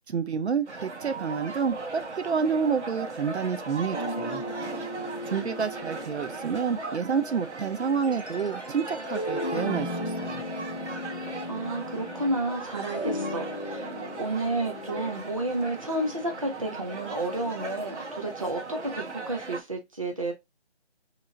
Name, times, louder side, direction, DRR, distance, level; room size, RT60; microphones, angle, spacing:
voice 1, 0.1-4.4 5.3-10.4, right 6 dB, 70° right, 0.6 m, -29 dB
sound 1, 0.6-19.6, right 3 dB, 85° right, 1.3 m, -38 dB
sound 2, 3.9-7.1 8.0-12.3 12.7-16.8, left 1 dB, 40° left, 0.4 m, -36 dB
voice 2, 11.5-13.9 14.2-20.3, right 2 dB, 30° right, 0.6 m, -31 dB
3.0 x 2.9 x 3.7 m
figure-of-eight pair, 170°, 34 cm